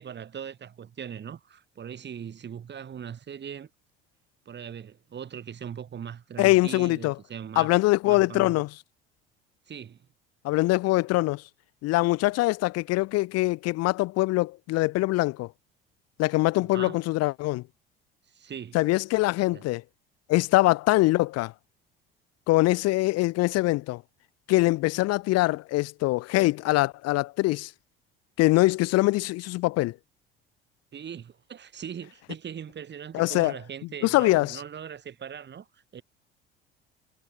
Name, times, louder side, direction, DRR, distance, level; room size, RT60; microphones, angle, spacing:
voice 1, 0.0-3.7 4.4-7.7 8.0-8.6 9.7-10.0 16.6-17.0 18.3-18.8 19.5-19.6 30.9-35.7 35.9-36.0, right 8 dB, 40° right, 3.2 m, -40 dB
voice 2, 6.4-7.1 7.6-8.7 10.4-11.4 11.8-15.5 16.2-17.6 18.7-19.8 20.3-21.5 22.5-24.0 24.5-27.7 28.4-29.9 33.1-33.5 34.0-34.6, left 20 dB, 60° left, 1.3 m, -23 dB
hypercardioid pair, 65°, 29 cm